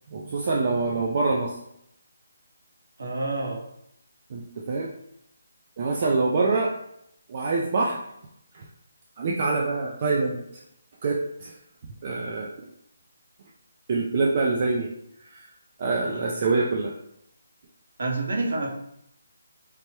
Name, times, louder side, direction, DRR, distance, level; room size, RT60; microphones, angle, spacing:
voice 1, 0.1-1.6 4.3-4.9 5.8-6.7 7.3-8.0 8.5-8.7 9.2-10.6 11.0-11.5 12.0-12.7 13.9-14.9 15.2-15.5 15.8-16.9, right 3 dB, 40° right, -2 dB, 0.3 m, -25 dB
voice 2, 3.0-3.6 16.1-16.4 18.0-18.7, right 2 dB, 60° right, 0 dB, 0.8 m, -28 dB
3.2 x 2.1 x 2.9 m, 0.76 s
hypercardioid pair, 165°, 0 cm